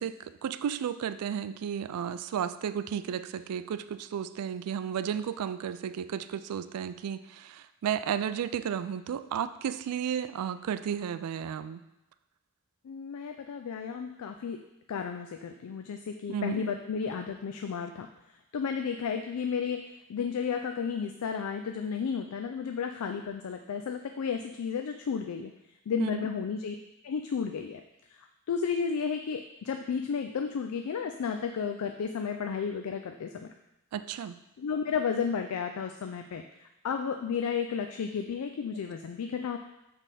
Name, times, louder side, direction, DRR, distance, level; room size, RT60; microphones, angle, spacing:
voice 1, 0.0-11.8 16.3-16.6 26.0-26.3 33.9-34.4, right 8 dB, 90° right, 12 dB, 0.3 m, -33 dB
voice 2, 12.8-14.6 14.9-18.1 18.5-25.5 25.9-26.8 27.0-27.8 28.1-33.5 34.6-39.6, left 6 dB, 75° left, 5 dB, 0.4 m, -33 dB
7.2 x 3.4 x 4.1 m, 0.90 s
head